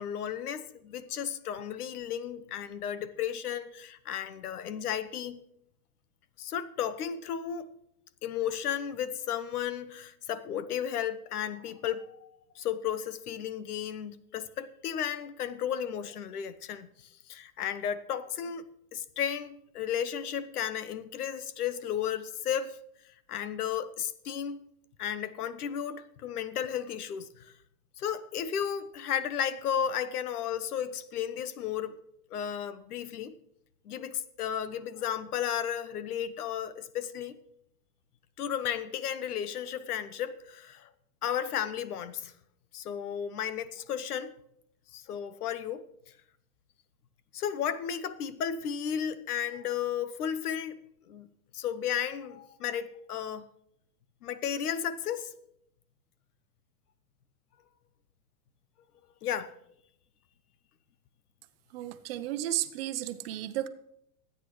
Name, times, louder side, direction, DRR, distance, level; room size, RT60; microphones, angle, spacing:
voice 1, 0.0-5.4 6.4-7.7 8.2-12.3 12.5-22.8 23.3-24.7 25.0-27.5 28.0-32.0 32.3-33.4 33.8-37.4 38.4-40.9 41.2-42.3 42.7-44.3 44.9-45.9 47.3-50.8 51.1-51.3 51.5-53.5 54.2-55.3 59.2-59.5, left 9 dB, 85° left, 1.1 m, -34 dB
voice 2, 61.7-63.7, right 13 dB, 40° right, 0.8 m, -33 dB
24.0 x 9.3 x 3.2 m
supercardioid pair, 160°, 44 cm